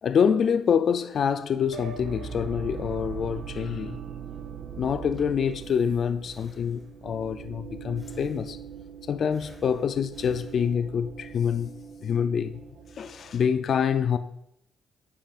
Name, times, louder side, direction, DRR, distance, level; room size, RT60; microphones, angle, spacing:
voice 1, 0.0-4.0 4.8-8.6 9.1-11.7 12.0-12.6 13.0-14.2, left 7 dB, 55° left, 0.4 m, -26 dB
sound 1, 1.7-13.6, right 7 dB, 65° right, 0.9 m, -41 dB
Breathing, 5.1-7.2 8.0-8.9 9.3-11.1, equal, 5° left, 1.9 m, -54 dB
10.5 x 8.6 x 2.4 m
cardioid pair, 90°, 0 cm